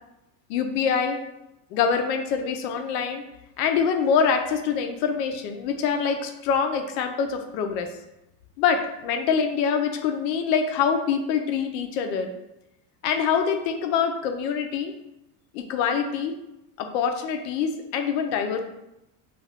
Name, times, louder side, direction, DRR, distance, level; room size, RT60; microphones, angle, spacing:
voice 1, 0.5-1.2 1.7-3.2 3.6-7.9 8.6-12.3 13.0-14.9 15.5-16.4 16.8-18.6, left 6 dB, 90° left, 5 dB, 0.6 m, -25 dB
2.5 x 2.3 x 3.3 m, 0.90 s
cardioid pair, 170°, 49 cm